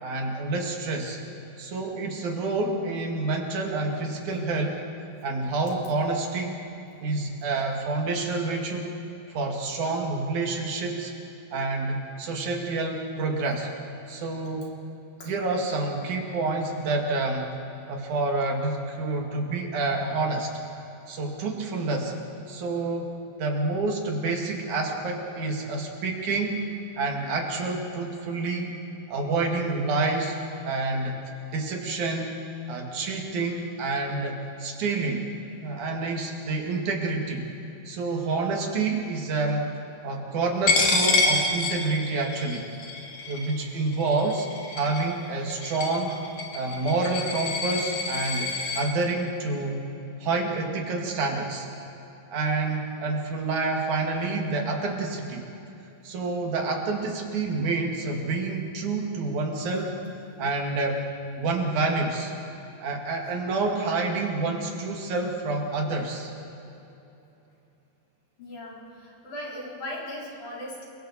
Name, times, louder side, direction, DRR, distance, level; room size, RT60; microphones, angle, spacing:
voice 1, 0.0-1.2 1.6-4.8 5.2-6.6 7.0-9.0 9.3-11.1 11.5-13.7 14.1-14.8 15.3-17.5 17.9-20.5 21.1-22.1 22.5-26.7 27.0-28.8 29.1-31.2 31.5-32.4 32.7-35.3 35.6-37.5 37.9-39.7 40.0-42.7 43.3-44.5 44.8-46.2 46.5-49.9 50.2-51.7 52.3-55.5 56.0-60.0 60.4-61.1 61.4-62.3 62.8-66.3, right 3 dB, 80° right, 1 dB, 3.6 m, -28 dB
Coin (dropping), 40.7-48.8, left 3 dB, 65° left, 3.4 m, -27 dB
voice 2, 68.4-70.8, left 1 dB, 85° left, -4 dB, 5.5 m, -38 dB
28.5 x 22.0 x 4.3 m, 2.9 s
omnidirectional pair, 3.4 m